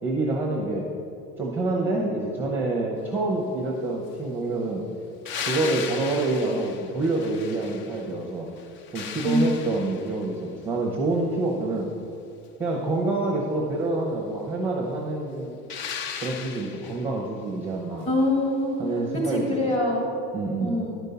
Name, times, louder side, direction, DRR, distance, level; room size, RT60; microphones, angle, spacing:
voice 1, 0.0-0.9 1.4-4.9 5.4-8.5 8.9-11.9 12.6-15.6 16.2-18.1 18.8-19.5 20.3-20.8, right 2 dB, 5° right, -2 dB, 0.7 m, -27 dB
sound 1, 5.3-8.2 8.6-10.3 15.7-17.1 19.7-19.8, left 7 dB, 40° left, 0.4 m, -36 dB
voice 2, 18.0-18.8 19.1-20.2 20.6-21.0, left 1 dB, 20° left, -2 dB, 2.2 m, -24 dB
11.0 x 5.3 x 6.8 m, 2.8 s
cardioid pair, 170°, 32 cm